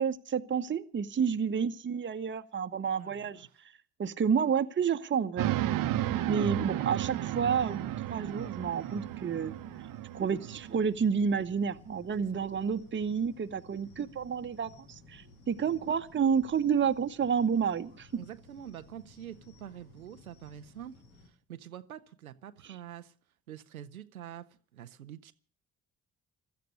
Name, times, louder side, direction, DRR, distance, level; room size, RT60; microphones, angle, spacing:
voice 1, 0.0-3.5 4.0-5.5 6.3-9.5 10.1-18.1, right 6 dB, 25° right, 1.1 m, -30 dB
voice 2, 3.0-3.6 5.9-6.2 12.3-12.4 18.1-23.1 23.5-25.3, right 10 dB, 85° right, 0.6 m, -46 dB
sound 1, 5.4-10.8, right 13 dB, 50° right, 1.0 m, -33 dB
sound 2, 7.1-21.3, left 2 dB, 70° left, 5.7 m, -56 dB
16.5 x 13.0 x 6.5 m
figure-of-eight pair, 45°, 42 cm